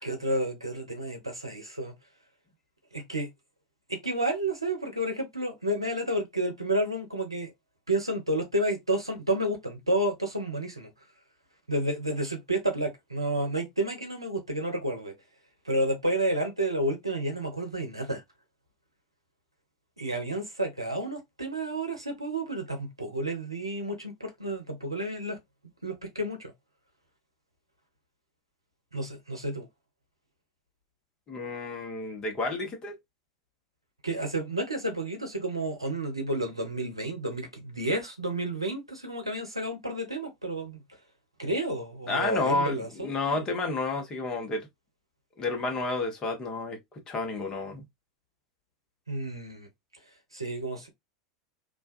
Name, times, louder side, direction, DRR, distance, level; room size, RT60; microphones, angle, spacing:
voice 1, 0.0-1.9 2.9-3.3 3.9-7.5 7.9-10.9 11.7-15.1 15.6-18.2 20.0-25.4 25.8-26.5 28.9-29.7 34.0-40.8 41.4-43.4 49.1-49.7 50.3-50.9, right 1 dB, 85° right, 0.7 m, -31 dB
voice 2, 31.3-33.0 42.1-44.7 45.4-46.8 47.1-47.8, left 3 dB, 25° left, 0.9 m, -30 dB
2.4 x 2.2 x 2.4 m
figure-of-eight pair, 80°, 3 cm